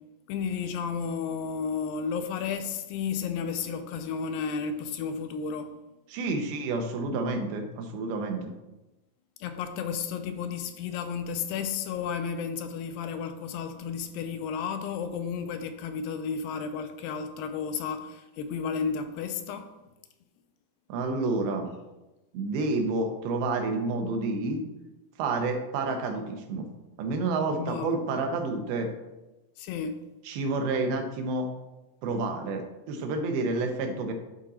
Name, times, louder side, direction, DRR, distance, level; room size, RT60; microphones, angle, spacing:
voice 1, 0.3-5.8 9.4-19.7 27.5-28.0 29.6-30.0 33.8-34.0, left 6 dB, 80° left, 2.2 m, -32 dB
voice 2, 6.1-8.5 20.9-21.7 22.3-24.6 25.2-26.7 27.0-28.9 30.3-31.5 32.0-34.1, right 3 dB, 85° right, 2.8 m, -29 dB
11.0 x 3.8 x 4.1 m
omnidirectional pair, 4.3 m